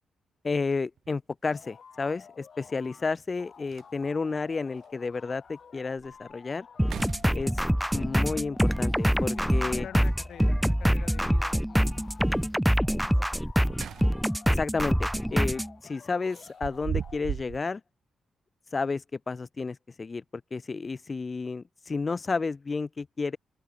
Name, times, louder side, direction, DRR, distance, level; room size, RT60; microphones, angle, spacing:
voice 1, 0.4-6.7 7.3-7.6 7.9-9.9 14.5-17.8 18.7-20.2 20.5-23.4, left 4 dB, 30° left, 1.5 m, -31 dB
sound 1, 1.0-1.1 2.8-2.9 3.3-3.4 3.7-4.3 4.8-4.9 5.5-5.6 6.0-6.3 6.8-7.8 9.9-10.6 13.4-14.4 14.8-15.0 16.3-17.6, right 9 dB, 70° right, 0.7 m, -38 dB
sound 2, 1.4-3.1 3.4-12.3 12.7-14.5 14.9-17.2, left 6 dB, 50° left, 3.9 m, -52 dB
sound 3, 6.8-15.7, equal, ahead, 1.1 m, -25 dB
voice 2, 9.3-13.6, left 9 dB, 70° left, 3.3 m, -48 dB
open air
cardioid pair, 105°, 0 cm